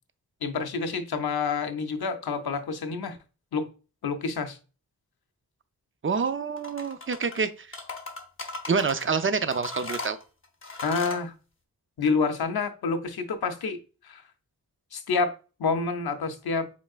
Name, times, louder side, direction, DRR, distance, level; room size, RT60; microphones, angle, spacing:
voice 1, 0.4-3.2 3.5-3.7 4.0-4.6 10.8-11.3 12.0-13.8 14.0-14.2 14.9-15.3 15.6-16.7, left 4 dB, 80° left, 0.7 m, -28 dB
voice 2, 6.0-7.8 8.7-10.2, right 5 dB, 35° right, 0.5 m, -27 dB
sound 1, 6.6-7.4 7.7-9.1 9.5-11.2, left 3 dB, 35° left, 0.8 m, -37 dB
5.1 x 3.4 x 2.4 m
wide cardioid pair, 60°, 37 cm